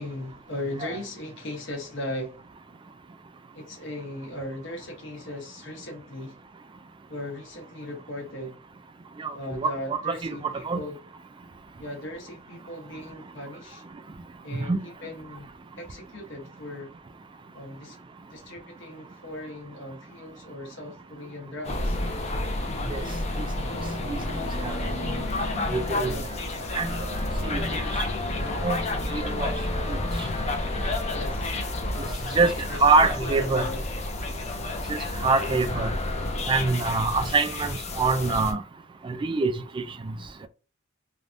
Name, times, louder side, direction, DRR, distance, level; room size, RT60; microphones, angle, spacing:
voice 1, 0.0-2.5 3.5-6.4 7.1-8.6 9.3-11.0 11.8-13.8 14.4-15.5 15.8-16.9 17.5-18.0 18.3-22.0 25.9-26.3 31.1-31.5 32.3-33.1 33.4-33.9 36.8-37.0, left 1 dB, 70° left, 1.0 m, -38 dB
voice 2, 9.2-10.8 14.7-14.8 22.9-23.0 23.4-23.5 24.1-24.2 24.6-24.7 25.6-26.1 26.7-26.9 27.4-27.8 28.6-28.8 29.1-29.5 29.9-30.0 32.3-33.6 34.9-35.9 36.5-38.6 39.0-40.1, right 4 dB, 25° right, 0.3 m, -25 dB
sound 1, 21.6-38.5, left 2 dB, 35° left, 0.5 m, -30 dB
3.3 x 2.2 x 2.5 m
head